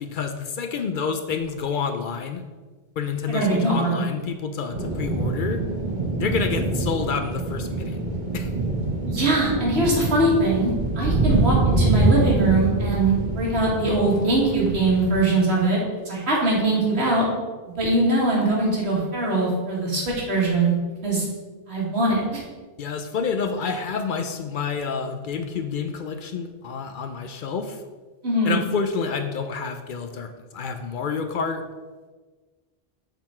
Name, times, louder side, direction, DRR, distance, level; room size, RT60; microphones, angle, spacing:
voice 1, 0.0-2.4 3.0-5.6 6.2-8.0 8.3-8.5 22.8-27.8 28.4-31.6, left 5 dB, 60° left, 7 dB, 0.6 m, -28 dB
voice 2, 3.3-4.0 9.1-15.8 16.1-17.3 17.8-20.7 21.0-21.2 21.7-22.4 28.2-28.5, right 2 dB, 85° right, -4 dB, 2.0 m, -22 dB
sound 1, 4.7-15.2, right 2 dB, 50° right, 1.1 m, -25 dB
6.9 x 3.9 x 4.3 m, 1.3 s
omnidirectional pair, 1.1 m